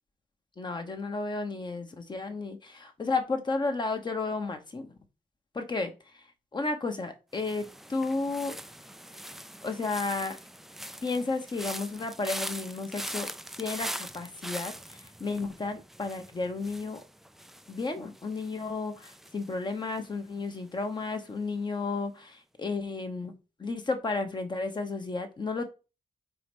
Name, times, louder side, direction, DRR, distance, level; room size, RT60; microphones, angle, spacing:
voice 1, 0.6-4.9 5.5-6.2 6.5-8.6 9.6-10.4 11.0-13.3 13.6-17.0 17.7-25.7, left 3 dB, 30° left, 1.0 m, -33 dB
sound 1, 7.4-20.4 20.7-21.1, equal, ahead, 0.4 m, -42 dB
4.7 x 4.2 x 5.3 m
wide cardioid pair, 130°, 15 cm